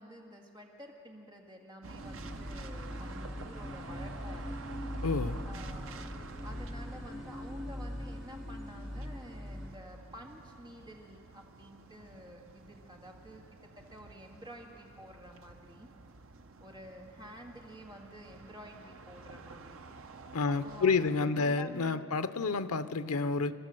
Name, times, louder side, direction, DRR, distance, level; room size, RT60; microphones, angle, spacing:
voice 1, 0.0-4.6 5.5-6.1 6.4-15.9 16.6-19.8 20.5-22.1, equal, 20° right, 0 dB, 1.9 m, -50 dB
sound 1, 1.8-21.2, right 3 dB, 65° right, 0.8 m, -50 dB
sound 2, 2.0-9.7, left 1 dB, ahead, 1.8 m, -41 dB
voice 2, 5.0-5.4 20.3-23.5, left 4 dB, 90° left, 12 dB, 0.6 m, -29 dB
28.0 x 12.5 x 7.7 m, 2.9 s
head